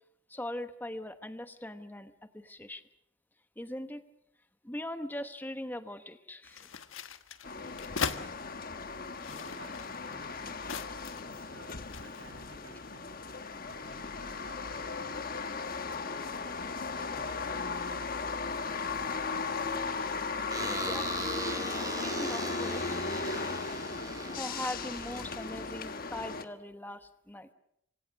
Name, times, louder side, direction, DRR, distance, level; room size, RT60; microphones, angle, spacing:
voice 1, 0.3-2.8 3.6-4.0 4.6-6.8 20.6-21.3 21.9-22.8 24.4-27.5, left 1 dB, 10° left, 9 dB, 1.1 m, -41 dB
sound 1, 6.4-8.2 9.0-11.3 11.7-12.4, left 5 dB, 75° left, 1.3 m, -39 dB
sound 2, 7.4-26.4, left 4 dB, 45° left, 1.3 m, -36 dB
voice 2, 9.2-10.6 11.3-13.1 13.6-15.5 15.9-19.5, right 2 dB, 85° right, 4 dB, 7.2 m, -56 dB
sound 3, 20.5-25.8, right 4 dB, 15° right, 1.1 m, -41 dB
26.0 x 26.0 x 6.4 m, 0.79 s
head